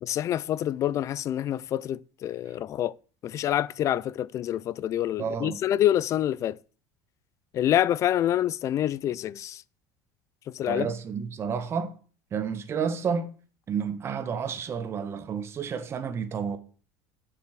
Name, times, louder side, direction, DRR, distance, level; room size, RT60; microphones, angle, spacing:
voice 1, 0.0-2.9 3.2-6.6 7.5-9.6 10.5-10.9, left 11 dB, 40° left, 0.4 m, -27 dB
voice 2, 5.2-5.6 10.7-11.9 12.3-13.3 13.7-16.6, right 6 dB, 30° right, 1.6 m, -30 dB
7.6 x 7.6 x 7.4 m
supercardioid pair, 130°, 8 cm